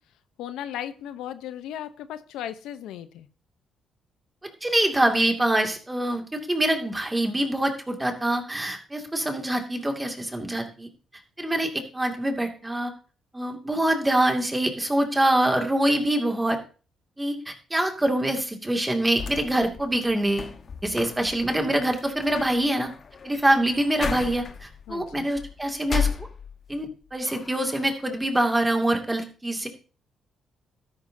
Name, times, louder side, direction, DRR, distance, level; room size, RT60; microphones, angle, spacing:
voice 1, 0.4-3.3 24.9-25.3, left 11 dB, 90° left, 11 dB, 0.8 m, -36 dB
voice 2, 4.6-10.9 11.4-12.9 13.3-16.6 17.2-20.5 20.8-22.9 23.2-26.3 26.7-29.7, right 1 dB, 15° right, 4 dB, 2.4 m, -25 dB
sound 1, 19.2-26.9 27.3-28.1, left 6 dB, 45° left, 1.2 m, -35 dB
12.5 x 11.5 x 2.8 m, 0.36 s
cardioid pair, 90°, 0 cm